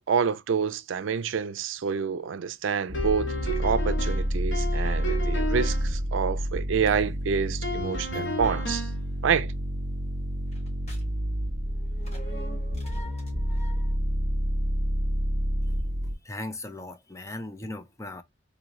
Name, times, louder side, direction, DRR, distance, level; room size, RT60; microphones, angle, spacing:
voice 1, 0.0-8.9 9.2-9.5, right 6 dB, 75° right, 0.4 m, -28 dB
sound 1, 2.9-5.9 7.6-9.1, left 1 dB, 65° left, 1.0 m, -33 dB
sound 2, 2.9-16.1, equal, 55° right, 1.3 m, -29 dB
sound 3, 6.9-7.0 8.1-8.2 10.5-11.0 11.6-14.0, right 1 dB, 35° left, 1.8 m, -45 dB
voice 2, 16.2-18.2, left 2 dB, 15° left, 0.4 m, -38 dB
3.9 x 3.0 x 2.6 m
head